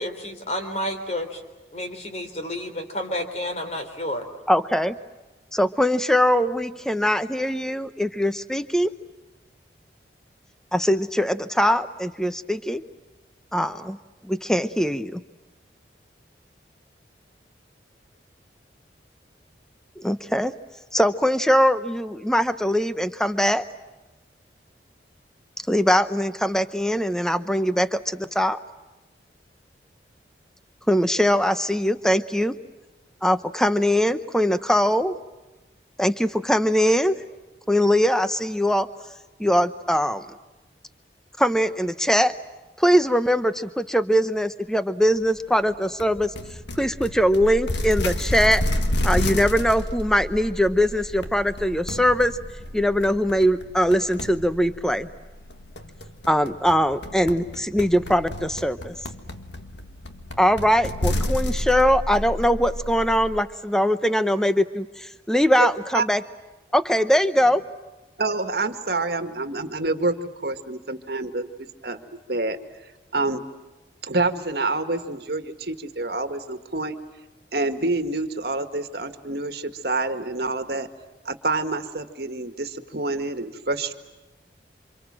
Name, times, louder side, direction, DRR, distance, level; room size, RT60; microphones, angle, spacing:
voice 1, 0.0-1.4 1.7-4.3, left 1 dB, 35° left, 6 dB, 3.5 m, -30 dB
voice 2, 4.5-4.9 5.5-8.9 10.7-12.8 13.5-14.0 14.3-15.2 20.0-20.5 20.9-23.6 25.7-28.6 30.9-32.5 33.2-35.2 36.0-37.2 37.7-38.9 39.4-40.2 41.4-42.3 42.8-46.3 46.8-48.6 49.0-52.4 52.7-55.1 56.3-59.0 60.4-66.2 66.7-67.6, equal, 5° left, 11 dB, 0.8 m, -21 dB
sound 1, 46.0-63.4, left 1 dB, 80° left, 1.8 m, -31 dB
voice 3, 68.2-71.5 71.8-72.6 73.1-73.4 74.0-77.0 77.5-80.9 81.3-83.9, right 2 dB, 60° right, 8 dB, 1.9 m, -27 dB
28.5 x 27.0 x 7.6 m, 1.1 s
head